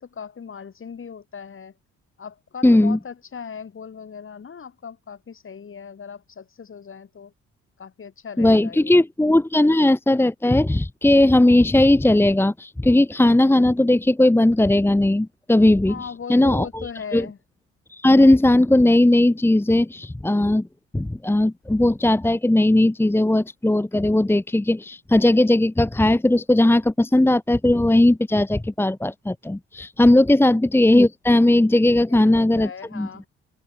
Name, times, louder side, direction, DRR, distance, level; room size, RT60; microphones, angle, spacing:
voice 1, 0.0-1.7 2.2-7.3 7.8-9.0 15.9-17.4 30.2-30.4 32.1-33.3, left 6 dB, 45° left, 5.1 m, -38 dB
voice 2, 2.6-3.0 8.4-16.0 16.3-17.3 17.9-20.7 20.9-33.1, left 1 dB, 5° left, 1.2 m, -18 dB
cardioid pair, 90°, 30 cm